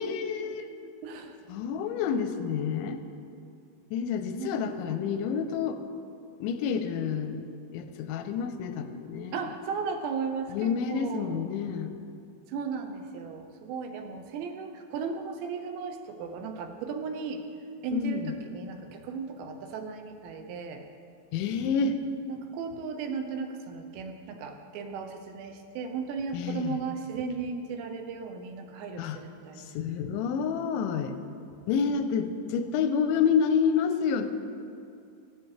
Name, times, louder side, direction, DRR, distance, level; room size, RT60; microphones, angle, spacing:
voice 1, 0.0-0.7 1.5-3.0 3.9-5.8 6.4-7.5 7.7-9.4 10.5-11.9 17.9-18.3 21.3-22.0 26.3-26.8 29.0-29.2 29.7-31.2 31.7-34.3, left 6 dB, 90° left, 8 dB, 3.0 m, -28 dB
voice 2, 0.7-1.4 4.4-5.0 9.3-11.4 12.5-17.4 17.8-20.8 22.3-29.7, right 5 dB, 80° right, 5 dB, 2.9 m, -36 dB
15.5 x 13.5 x 3.3 m, 2.5 s
omnidirectional pair, 5.3 m